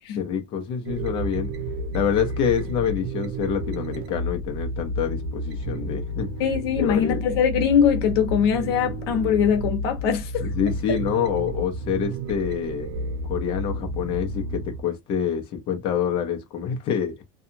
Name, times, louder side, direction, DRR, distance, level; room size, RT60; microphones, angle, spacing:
voice 1, 0.2-1.5 1.9-6.3 6.8-7.2 10.4-12.9 13.2-17.2, left 8 dB, 40° left, 0.7 m, -26 dB
sound 1, 0.9-14.8, right 1 dB, 80° right, 0.8 m, -31 dB
voice 2, 6.4-10.5, left 8 dB, 75° left, 0.9 m, -22 dB
2.8 x 2.4 x 2.6 m
supercardioid pair, 145°, 13 cm